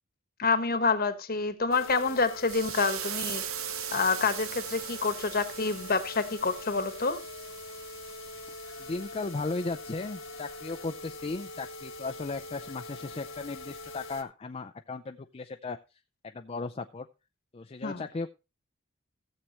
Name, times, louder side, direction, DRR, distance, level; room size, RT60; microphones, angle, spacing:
voice 1, 0.4-3.4 3.9-7.2 17.8-18.0, left 4 dB, 45° left, 1.2 m, -27 dB
sound 1, 1.7-14.2, left 2 dB, 65° left, 1.5 m, -43 dB
sound 2, 2.5-13.4 13.8-13.9, right 11 dB, 85° right, 0.8 m, -41 dB
voice 2, 8.8-15.8 16.3-17.1 17.5-18.3, left 3 dB, 30° left, 0.4 m, -36 dB
16.0 x 7.5 x 3.0 m
head